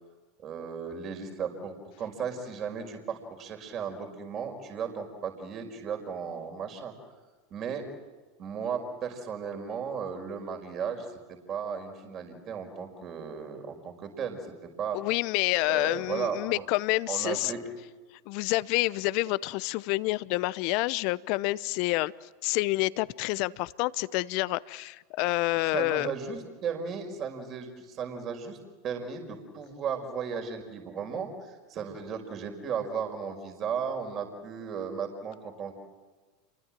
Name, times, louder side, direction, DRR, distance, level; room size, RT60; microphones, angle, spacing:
voice 1, 0.4-6.9 7.5-7.8 8.4-15.0 15.7-16.6 17.1-17.6 25.7-28.6 28.8-35.7, right 6 dB, 40° right, 4 dB, 5.1 m, -35 dB
voice 2, 14.9-17.6 18.1-26.1, left 20 dB, 55° left, 19 dB, 0.8 m, -28 dB
29.0 x 24.0 x 7.6 m, 1.3 s
hypercardioid pair, 85°, 0 cm